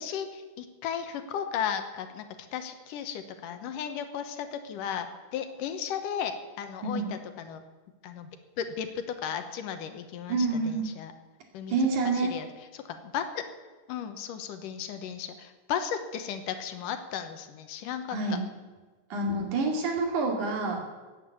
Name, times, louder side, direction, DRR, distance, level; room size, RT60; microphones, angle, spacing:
voice 1, 0.0-2.2 2.5-7.6 8.0-8.3 8.6-8.9 9.2-11.1 11.5-11.8 12.3-12.5 12.7-13.5 13.9-18.2, left 8 dB, 75° left, 8 dB, 2.6 m, -35 dB
voice 2, 10.3-10.8 11.7-12.3 18.1-18.4 19.1-20.8, right 3 dB, 65° right, 2 dB, 3.7 m, -27 dB
16.0 x 9.4 x 8.4 m, 1.3 s
omnidirectional pair, 3.9 m